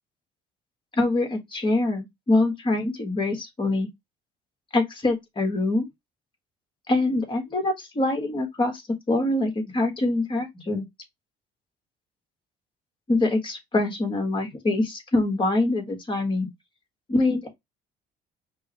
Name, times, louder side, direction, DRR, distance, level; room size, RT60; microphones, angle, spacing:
voice 1, 1.0-3.9 4.7-5.9 6.9-8.8 9.1-10.8 13.1-16.5 17.1-17.5, left 2 dB, 30° left, 1.5 m, -24 dB
5.3 x 2.2 x 2.9 m
cardioid pair, 110°, 17 cm